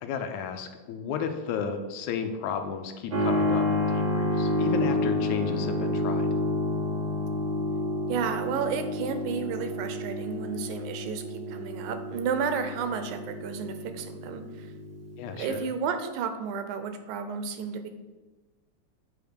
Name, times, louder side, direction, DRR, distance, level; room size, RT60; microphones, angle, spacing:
voice 1, 0.0-6.3 15.2-15.7, left 6 dB, 80° left, 6 dB, 2.1 m, -33 dB
Keyboard (musical), 3.1-15.5, left 1 dB, 65° right, 0.7 m, -29 dB
voice 2, 8.1-14.7 15.3-17.9, right 6 dB, 85° right, 9 dB, 2.1 m, -32 dB
8.7 x 3.5 x 6.7 m, 1.2 s
omnidirectional pair, 3.5 m